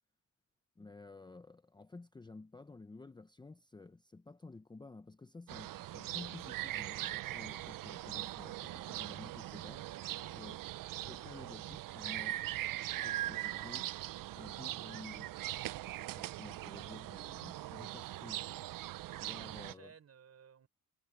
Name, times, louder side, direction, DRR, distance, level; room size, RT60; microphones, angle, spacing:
voice 1, 0.8-10.0 10.3-10.6 11.0-12.4 12.9-13.9 14.4-15.3 16.1-18.5 19.2-19.9, left 3 dB, 15° left, 0.6 m, -52 dB
sound 1, 5.5-19.7, right 15 dB, 75° right, 0.5 m, -41 dB
voice 2, 9.9-10.6 19.3-20.7, right 7 dB, 50° right, 4.9 m, -60 dB
wide cardioid pair, 160°, 33 cm